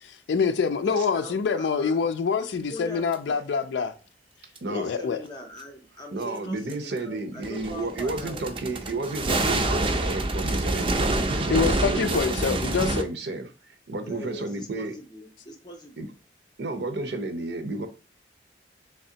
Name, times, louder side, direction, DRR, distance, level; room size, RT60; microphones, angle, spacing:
voice 1, 0.0-3.9 4.7-5.2 11.5-13.0, left 5 dB, 80° left, 0.4 m, -25 dB
voice 2, 0.8-2.0 2.7-3.4 4.7-8.5 14.1-16.1, left 1 dB, 25° left, 0.5 m, -42 dB
sound 1, 3.1-3.2 4.6-4.7 6.7-6.8 7.4-13.0, right 2 dB, 30° right, 0.4 m, -27 dB
voice 3, 4.6-4.9 6.1-12.6 13.0-14.9 16.0-16.1 16.6-17.9, right 2 dB, 70° right, 0.6 m, -32 dB
3.5 x 3.1 x 2.8 m
head